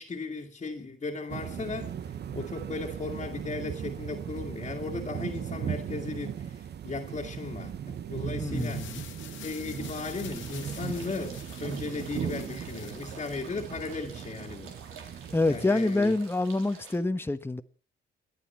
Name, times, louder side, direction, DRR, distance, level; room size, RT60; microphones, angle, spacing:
voice 1, 0.0-1.9 2.3-8.9 9.4-14.8 15.5-16.1, left 3 dB, 35° left, 2.0 m, -36 dB
sound 1, 1.3-15.7, right 8 dB, 55° right, 1.1 m, -37 dB
sound 2, 8.3-13.5, left 11 dB, 80° left, 1.9 m, -48 dB
voice 2, 8.4-9.1 15.3-17.6, left 2 dB, 10° left, 1.2 m, -27 dB
sound 3, 9.8-17.0, right 5 dB, 90° right, 3.6 m, -49 dB
28.0 x 9.5 x 4.5 m
cardioid pair, 90°, 20 cm